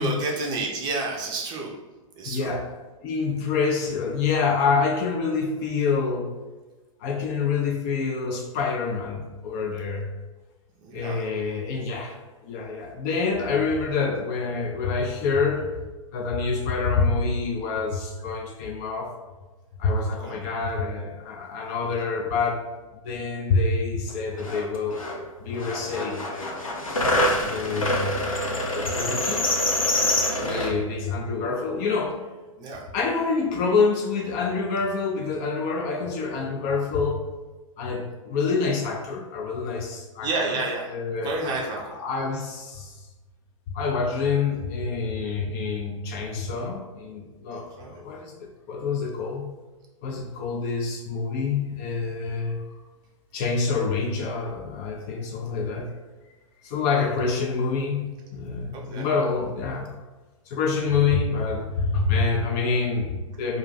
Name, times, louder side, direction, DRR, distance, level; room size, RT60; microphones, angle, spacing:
voice 1, 0.0-1.7 2.2-2.5 10.8-11.2 20.2-20.4 30.4-30.6 32.6-32.8 40.2-40.9 41.2-41.8 47.5-47.9 57.0-57.1 58.7-59.1, right 3 dB, 25° right, -1 dB, 0.5 m, -30 dB
voice 2, 2.3-2.7 3.0-6.3 7.0-10.1 10.9-12.2 12.4-15.7 16.1-19.1 19.8-22.6 23.0-25.0 25.4-26.6 27.4-28.4 28.7-29.5 30.4-32.2 32.9-37.2 37.8-40.6 40.9-43.1 43.7-49.5 50.0-52.6 53.3-55.9 56.6-60.0 60.5-63.6, left 4 dB, 30° left, 1 dB, 0.4 m, -27 dB
sound 1, 24.1-24.2 24.4-25.2 25.5-30.7, left 1 dB, 85° left, 0.6 m, -25 dB
2.4 x 2.2 x 3.9 m, 1.2 s
figure-of-eight pair, 105°, 17 cm